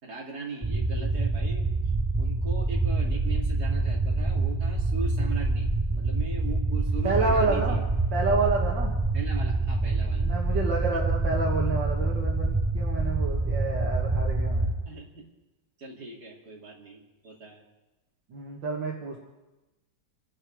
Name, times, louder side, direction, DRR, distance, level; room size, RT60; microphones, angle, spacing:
voice 1, 0.0-1.7 2.2-7.8 9.1-10.3 10.9-11.0 14.9-15.2 15.8-17.6, right 3 dB, 55° right, -2 dB, 3.4 m, -39 dB
sound 1, 0.6-14.7, right 2 dB, 20° right, 0.4 m, -26 dB
sound 2, 6.8-8.5, equal, 55° left, 4.3 m, -49 dB
voice 2, 7.0-7.8 8.1-8.9 10.2-14.7 18.3-19.2, right 3 dB, 80° right, -2 dB, 2.3 m, -29 dB
27.5 x 11.0 x 4.8 m, 1.1 s
omnidirectional pair, 2.0 m